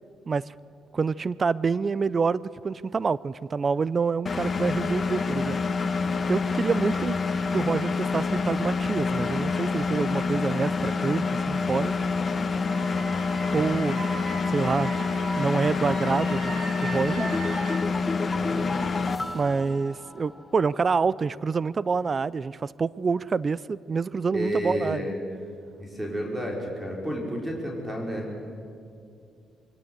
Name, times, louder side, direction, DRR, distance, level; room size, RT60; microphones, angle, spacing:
voice 1, 0.9-5.6 6.3-7.2 7.5-12.0 13.5-14.0 14.5-14.9 15.4-17.4 19.3-25.0, right 5 dB, 35° right, 21 dB, 0.4 m, -27 dB
Engine, 4.3-19.2, left 4 dB, 35° left, 1.5 m, -27 dB
Wind instrument woodwind instrument, 12.7-17.7, right 2 dB, 70° right, 6.9 m, -37 dB
sound 1, 17.2-20.6 20.9-21.0, left 3 dB, 15° left, 1.0 m, -34 dB
voice 2, 18.2-18.7 24.3-25.2 25.8-28.3, equal, 15° right, -1 dB, 4.9 m, -31 dB
22.5 x 18.0 x 7.9 m, 2.4 s
cardioid pair, 90°, 0 cm